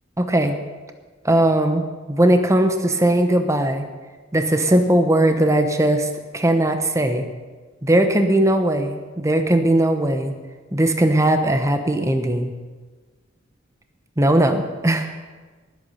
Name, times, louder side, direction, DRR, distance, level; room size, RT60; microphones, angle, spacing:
voice 1, 0.2-0.6 1.2-3.9 4.3-6.1 6.3-7.2 7.8-10.3 10.7-12.5 14.2-15.1, right 1 dB, 15° right, 7 dB, 1.0 m, -19 dB
19.0 x 8.3 x 5.7 m, 1.4 s
head